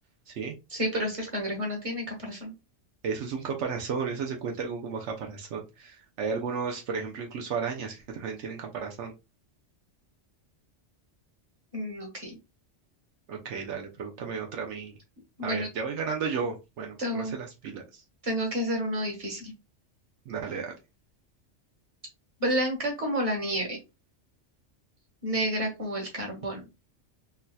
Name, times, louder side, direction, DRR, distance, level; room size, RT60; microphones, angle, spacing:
voice 1, 0.7-2.5 11.7-12.4 15.4-15.7 17.0-17.3 18.2-19.5 22.4-23.8 25.2-26.6, equal, 30° right, 1 dB, 1.2 m, -30 dB
voice 2, 3.0-9.1 13.3-14.9 15.4-18.0 20.3-20.7, right 5 dB, 80° right, 2 dB, 0.9 m, -33 dB
3.9 x 2.7 x 2.2 m, 0.26 s
omnidirectional pair, 1.2 m